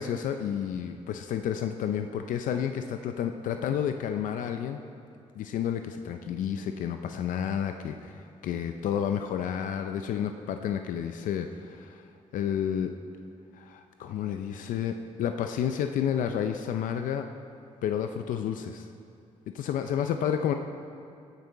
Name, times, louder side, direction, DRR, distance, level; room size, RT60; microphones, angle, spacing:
voice 1, 0.0-4.8 5.4-12.0 12.3-12.9 13.5-17.3 17.8-18.9 19.5-20.5, left 9 dB, 85° left, 7 dB, 0.5 m, -30 dB
16.0 x 6.7 x 4.6 m, 2.6 s
cardioid pair, 90°, 13 cm